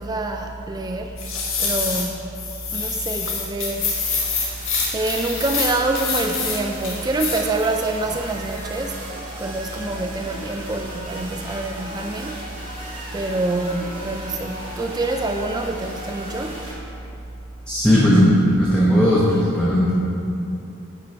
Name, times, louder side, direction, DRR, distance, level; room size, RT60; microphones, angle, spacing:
voice 1, 0.0-2.4 2.7-4.0 4.9-9.0 9.4-12.5 13.1-16.6, right 2 dB, 20° right, 4 dB, 0.3 m, -26 dB
sound 1, 1.2-2.1 2.3-6.6 6.8-7.7 8.0-8.1, left 5 dB, 75° left, 1.6 m, -26 dB
sound 2, 3.7-16.7, right 1 dB, 40° right, 2.0 m, -36 dB
voice 2, 17.7-19.9, equal, 5° left, -8 dB, 1.0 m, -16 dB
9.3 x 5.5 x 4.5 m, 2.7 s
head